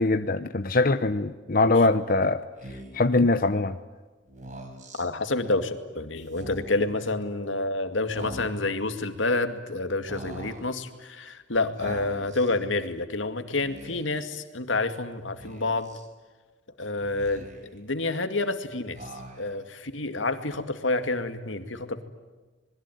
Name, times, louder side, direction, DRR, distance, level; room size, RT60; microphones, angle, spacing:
voice 1, 0.0-2.4 2.9-3.8, left 2 dB, 50° left, 9 dB, 0.9 m, -22 dB
Speech, 2.6-3.1 4.3-5.1 6.3-6.9 8.1-8.8 10.1-10.7 11.8-12.5 13.6-14.2 15.4-16.1 17.0-17.8 19.0-19.7, right 1 dB, 40° right, 4.4 m, -42 dB
voice 2, 5.0-15.9 16.8-17.5 17.7-19.0 19.4-22.0, left 2 dB, 90° left, 8 dB, 2.2 m, -28 dB
26.5 x 21.0 x 9.4 m, 1.3 s
head